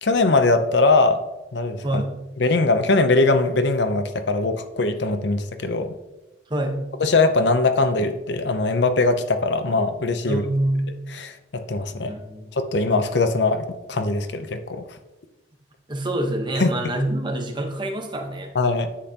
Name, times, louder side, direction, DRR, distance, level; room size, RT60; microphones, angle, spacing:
voice 1, 0.0-1.2 1.5-2.0 2.4-5.9 7.0-10.4 11.1-12.1 12.5-14.8 16.6-16.7 18.5-18.9, left 3 dB, 65° left, 9 dB, 0.7 m, -21 dB
voice 2, 6.5-6.9 10.2-11.0 12.1-12.5 15.9-18.5, right 1 dB, 25° right, 3 dB, 1.1 m, -26 dB
10.0 x 7.6 x 2.9 m, 1.0 s
head